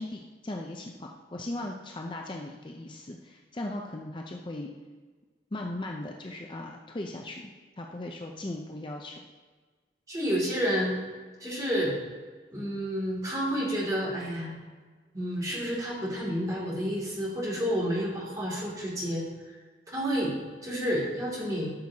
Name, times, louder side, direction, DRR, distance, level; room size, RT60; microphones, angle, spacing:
voice 1, 0.0-4.7 5.5-9.2, left 1 dB, 30° left, 1 dB, 0.5 m, -38 dB
voice 2, 10.1-11.0 11.4-12.0 12.5-14.5 15.1-19.2 19.9-20.3 20.6-21.7, equal, 20° right, -4 dB, 2.6 m, -30 dB
12.5 x 6.2 x 2.9 m, 1.4 s
head